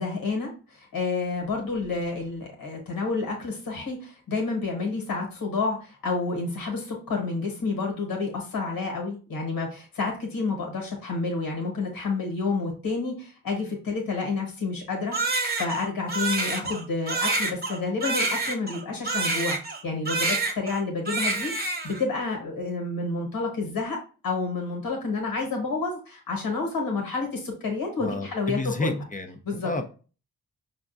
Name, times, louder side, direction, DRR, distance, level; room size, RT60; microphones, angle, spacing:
voice 1, 0.0-15.2 15.6-24.0 24.2-29.0 29.4-29.9, left 3 dB, 80° left, 1.3 m, -29 dB
Crying sobbing, 15.1-19.8 20.1-20.8 21.1-22.0, right 3 dB, 30° right, 0.9 m, -27 dB
voice 2, 28.0-29.9, left 2 dB, 25° left, 0.7 m, -31 dB
5.1 x 2.3 x 2.6 m
cardioid pair, 45°, 34 cm